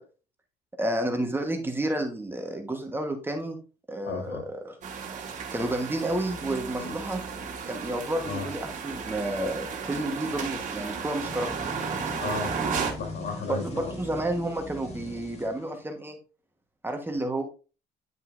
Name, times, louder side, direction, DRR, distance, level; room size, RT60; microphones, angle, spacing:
voice 1, 0.8-3.6 3.9-4.7 5.5-7.2 7.7-11.5 13.5-16.2 16.8-17.4, right 1 dB, 15° right, 4 dB, 1.3 m, -30 dB
voice 2, 4.0-4.5 6.8-6.9 8.2-8.5 12.2-13.9, left 5 dB, 70° left, 1 dB, 3.4 m, -35 dB
sound 1, 4.8-12.9, right 6 dB, 45° right, 1.7 m, -34 dB
sound 2, 11.2-16.1, equal, 40° left, 2.1 m, -40 dB
9.4 x 5.4 x 2.6 m, 0.34 s
cardioid pair, 110°, 17 cm